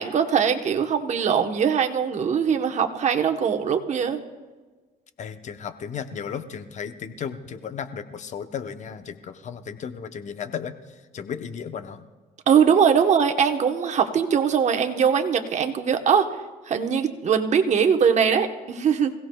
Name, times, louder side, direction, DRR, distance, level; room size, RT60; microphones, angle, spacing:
voice 1, 0.0-4.2 12.5-16.3 16.7-19.1, right 7 dB, 45° right, 5 dB, 1.1 m, -21 dB
voice 2, 5.2-12.1, left 7 dB, 45° left, 9 dB, 0.8 m, -35 dB
26.5 x 16.5 x 2.3 m, 1.3 s
cardioid pair, 110°, 17 cm